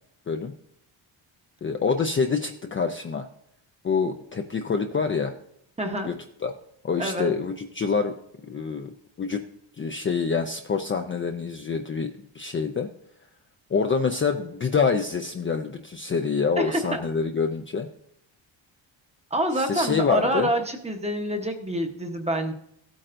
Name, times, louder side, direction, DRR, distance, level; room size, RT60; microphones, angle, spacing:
voice 1, 1.6-3.3 3.8-5.3 6.1-6.2 6.4-6.5 6.8-8.2 8.4-9.4 9.8-12.9 13.7-17.9 19.5-20.5, left 5 dB, 25° left, 4 dB, 0.5 m, -26 dB
voice 2, 5.8-6.1 7.0-7.3 16.6-17.0 19.3-22.5, right 1 dB, 15° right, 4 dB, 0.9 m, -26 dB
16.0 x 8.7 x 2.6 m, 0.72 s
cardioid pair, 145°, 48 cm